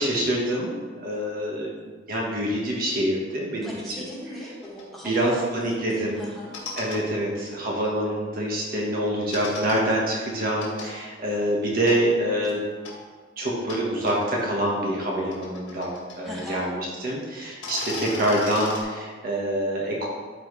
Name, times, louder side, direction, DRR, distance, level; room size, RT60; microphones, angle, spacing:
voice 1, 0.0-4.1 5.0-6.2 6.8-12.6 13.4-20.1, right 1 dB, 50° right, -3 dB, 1.4 m, -26 dB
voice 2, 3.6-6.6 16.2-16.6, equal, ahead, -6 dB, 1.8 m, -38 dB
sound 1, 4.6-4.8 6.3-7.0 9.3-9.8 10.6-10.9 11.9-12.0 12.8-12.9 13.7-13.8 14.1-14.2 15.1-16.6 16.9-17.0 17.5-18.8, left 3 dB, 85° left, 2.0 m, -36 dB
12.0 x 4.6 x 3.2 m, 1.5 s
head